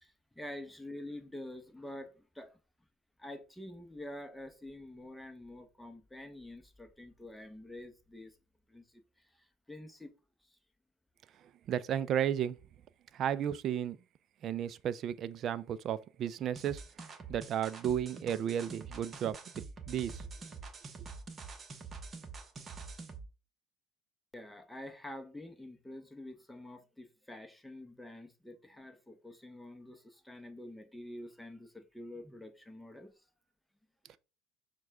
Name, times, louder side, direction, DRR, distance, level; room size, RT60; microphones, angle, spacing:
voice 1, 0.0-2.6 3.2-8.4 8.7-10.1 10.4-10.6 24.3-33.1, left 1 dB, 5° left, 0.8 m, -47 dB
voice 2, 11.7-12.6 13.1-14.0 14.4-16.8 17.3-20.2, right 9 dB, 50° right, 0.4 m, -33 dB
sound 1, 16.6-23.3, right 4 dB, 35° right, 0.8 m, -46 dB
6.2 x 2.2 x 3.5 m
supercardioid pair, 85°, 0 cm